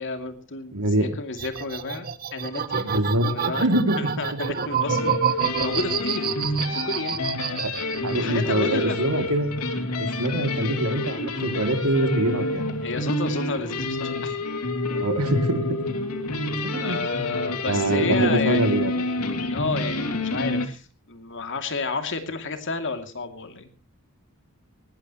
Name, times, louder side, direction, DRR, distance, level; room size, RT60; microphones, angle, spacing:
voice 1, 0.0-2.8 3.3-3.7 4.0-6.3 6.7-7.6 8.1-9.2 12.8-14.4 16.8-23.7, left 3 dB, 60° left, 7 dB, 2.6 m, -31 dB
voice 2, 0.7-1.1 2.8-4.0 7.6-7.8 8.0-9.5 10.0-12.7 14.9-15.6 16.6-17.0 17.7-18.9, right 1 dB, 90° right, 7 dB, 2.6 m, -24 dB
sound 1, 1.4-8.3 8.6-9.5, right 7 dB, 45° right, 1.1 m, -28 dB
sound 2, 4.8-20.7, left 2 dB, 90° left, 2.6 m, -28 dB
19.5 x 19.0 x 3.0 m, 0.33 s
head